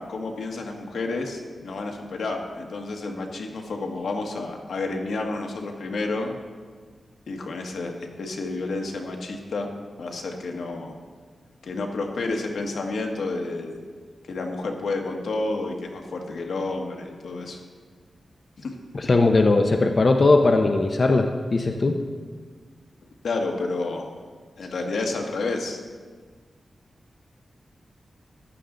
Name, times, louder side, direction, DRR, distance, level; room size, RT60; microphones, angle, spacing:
voice 1, 0.0-6.3 7.3-9.7 10.0-11.0 11.6-13.8 14.3-17.6 18.6-18.7 19.5-19.6 23.2-24.1 24.6-25.8, left 3 dB, 85° left, 2 dB, 1.5 m, -30 dB
voice 2, 18.9-21.9, left 3 dB, 45° left, 4 dB, 0.8 m, -19 dB
14.5 x 11.0 x 3.9 m, 1.5 s
wide cardioid pair, 110°, 0 cm